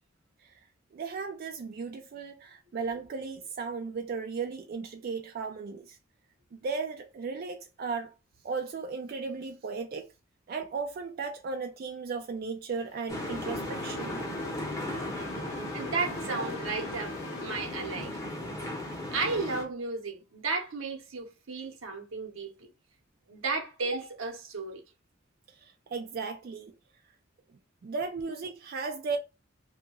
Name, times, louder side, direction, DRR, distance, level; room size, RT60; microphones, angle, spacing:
voice 1, 0.9-6.0 6.6-8.1 8.4-10.1 10.5-14.3 25.5-26.7 27.8-29.2, right 4 dB, 45° right, 0.3 m, -36 dB
Race car auto racing / Accelerating revving vroom, 12.7-18.2, left 4 dB, 75° left, 0.5 m, -46 dB
sound 1, 13.1-19.6, left 1 dB, 15° left, 0.7 m, -36 dB
voice 2, 15.7-18.1 19.1-22.7 23.3-24.8, right 4 dB, 85° right, 0.9 m, -34 dB
2.7 x 2.3 x 2.8 m
head